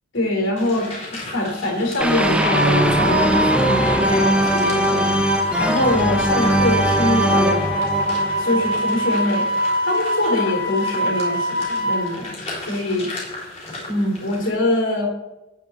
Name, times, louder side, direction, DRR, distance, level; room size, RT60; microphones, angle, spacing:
voice 1, 0.1-0.9 1.3-5.2 5.6-7.6 8.4-9.4 9.8-13.1 13.9-15.1, left 1 dB, 60° left, 1 dB, 3.2 m, -23 dB
sound 1, 0.6-14.5, left 2 dB, 25° left, 3.5 m, -36 dB
sound 2, 2.0-9.0, right 1 dB, 5° right, 0.5 m, -21 dB
Wind instrument woodwind instrument, 2.2-12.1, equal, 45° left, 1.4 m, -24 dB
9.4 x 8.6 x 4.2 m, 0.99 s
head